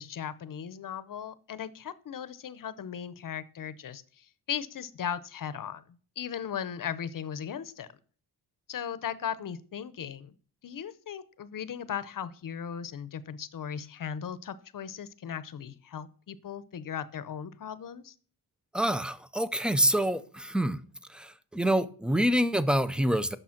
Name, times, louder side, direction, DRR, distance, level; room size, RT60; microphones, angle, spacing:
voice 1, 0.0-5.8 6.2-7.9 8.7-10.3 10.6-18.1, left 8 dB, 55° left, 0.7 m, -37 dB
voice 2, 18.7-20.8 21.1-23.4, equal, 5° right, 0.3 m, -26 dB
8.8 x 6.6 x 5.8 m
wide cardioid pair, 140°, 40 cm